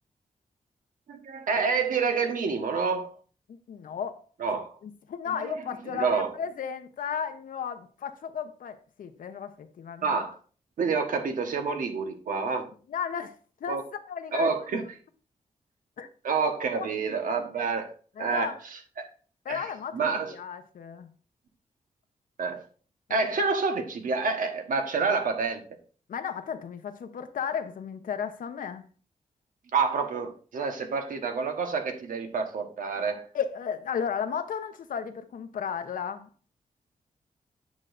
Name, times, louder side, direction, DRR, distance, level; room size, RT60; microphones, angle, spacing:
voice 1, 1.1-3.1 4.4-4.7 5.5-5.6 5.9-6.3 10.0-10.4 10.8-12.7 13.7-13.8 14.3-14.8 16.2-17.9 18.2-18.5 19.0-19.1 19.5-19.6 19.9-20.3 22.4-22.6 23.1-25.6 29.7-33.3, right 4 dB, 90° right, 1.2 m, -28 dB
voice 2, 3.5-4.2 4.8-10.2 12.9-13.3 13.6-14.5 16.0-16.1 16.7-16.9 18.2-18.5 19.4-21.1 23.3-23.4 26.1-28.8 33.3-36.3, left 7 dB, 90° left, 0.8 m, -34 dB
9.8 x 6.2 x 2.6 m
wide cardioid pair, 105°, 14 cm